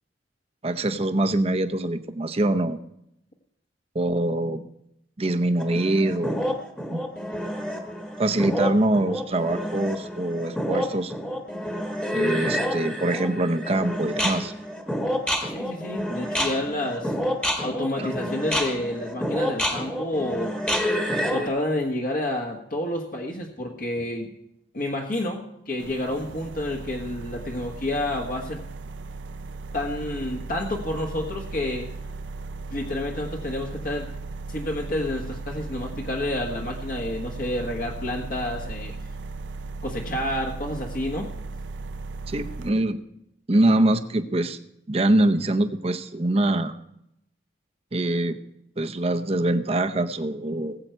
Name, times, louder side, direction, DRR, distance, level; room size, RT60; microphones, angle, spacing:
voice 1, 0.6-2.8 3.9-4.6 5.2-6.4 6.9-7.0 8.2-11.1 12.1-14.5 18.0-18.1 42.3-43.0 43.5-44.6 44.9-46.8 47.9-48.4 48.8-50.8, right 1 dB, 35° right, 9 dB, 0.7 m, -24 dB
sound 1, 5.6-21.5, equal, 5° left, 1.3 m, -28 dB
voice 2, 15.5-17.1 17.6-20.5 21.3-24.3 24.7-28.6 29.7-31.9 32.7-34.1 34.5-38.9 39.8-41.3, left 1 dB, 50° left, 0 dB, 1.3 m, -29 dB
sound 2, 25.8-42.7, right 3 dB, 85° right, 0.5 m, -37 dB
19.5 x 8.0 x 4.5 m, 0.80 s
head